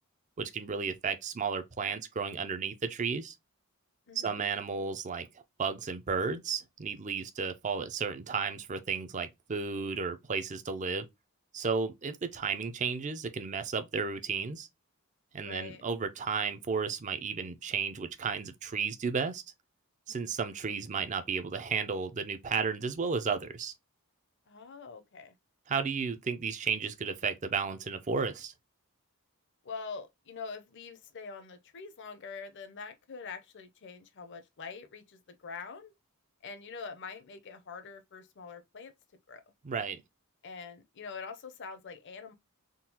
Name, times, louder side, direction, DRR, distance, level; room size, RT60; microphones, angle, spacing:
voice 1, 0.4-3.3 4.2-5.3 5.6-11.1 11.5-14.7 15.3-19.4 20.1-23.7 25.7-28.5 39.6-40.0, right 5 dB, 35° right, 0.5 m, -33 dB
voice 2, 4.1-4.5 15.3-15.8 24.5-25.3 29.6-35.9 36.4-38.9 39.3-39.4 40.4-42.3, left 5 dB, 55° left, 0.6 m, -44 dB
3.7 x 2.3 x 2.8 m
head